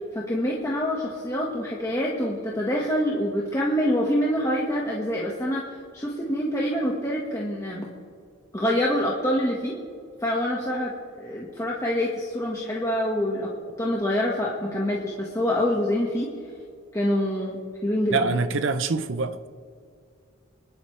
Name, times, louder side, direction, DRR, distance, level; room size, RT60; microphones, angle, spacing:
voice 1, 0.1-5.6 5.9-7.9 8.5-9.8 10.2-10.9 11.2-13.5 13.8-16.3 16.9-18.4, equal, 15° left, 1.5 m, -26 dB
voice 2, 18.1-19.5, right 4 dB, 65° right, 0.6 m, -25 dB
26.0 x 11.5 x 3.3 m
head